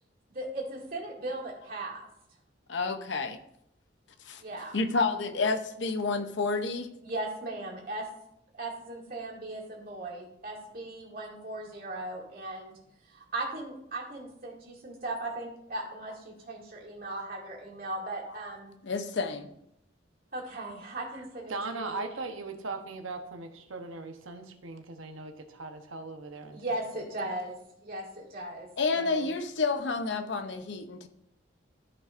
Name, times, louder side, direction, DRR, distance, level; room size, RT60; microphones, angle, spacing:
voice 1, 0.3-2.1 4.4-4.9 7.0-8.1 8.5-10.1 10.4-12.8 13.1-18.7 20.3-22.1 26.5-29.2, right 2 dB, 45° right, -4 dB, 2.3 m, -38 dB
voice 2, 2.7-3.4 4.2-4.4 4.7-6.9 18.8-19.5 28.8-31.1, left 4 dB, 65° left, 7 dB, 0.7 m, -29 dB
voice 3, 21.5-26.8, right 3 dB, 85° right, 5 dB, 1.0 m, -39 dB
13.0 x 5.4 x 2.5 m, 0.78 s
head